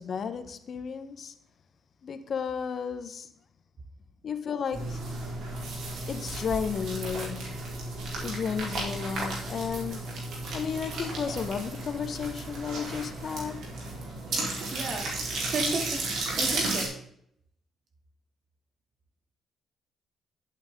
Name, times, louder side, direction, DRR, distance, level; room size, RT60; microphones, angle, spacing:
voice 1, 0.0-1.3 2.0-3.3 4.2-5.0 6.1-7.6 8.2-10.2 10.5-13.6, left 6 dB, 50° left, 9 dB, 1.0 m, -33 dB
sound 1, 4.7-16.9, right 2 dB, 75° right, 3.8 m, -34 dB
voice 2, 14.7-17.0, right 3 dB, 50° right, 3 dB, 2.5 m, -35 dB
10.5 x 8.9 x 3.7 m, 0.71 s
cardioid pair, 90°, 0 cm